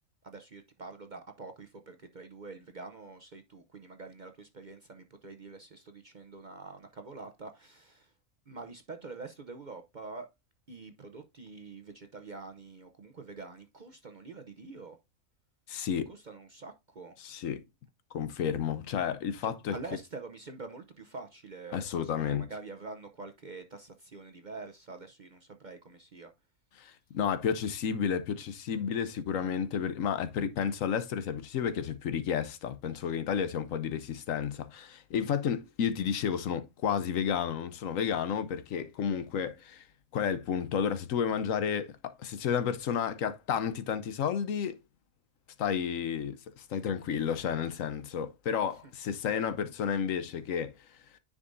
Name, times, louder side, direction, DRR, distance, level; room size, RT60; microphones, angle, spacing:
voice 1, 0.2-8.1 8.5-10.3 10.7-15.0 16.1-17.2 19.4-26.3, right 3 dB, 45° right, 0.8 m, -46 dB
voice 2, 15.7-16.1 17.2-17.6 18.1-19.8 21.7-22.5 26.8-39.8 40.1-44.8 45.6-50.7, left 7 dB, 75° left, 1.2 m, -31 dB
9.7 x 5.0 x 2.6 m
omnidirectional pair, 1.4 m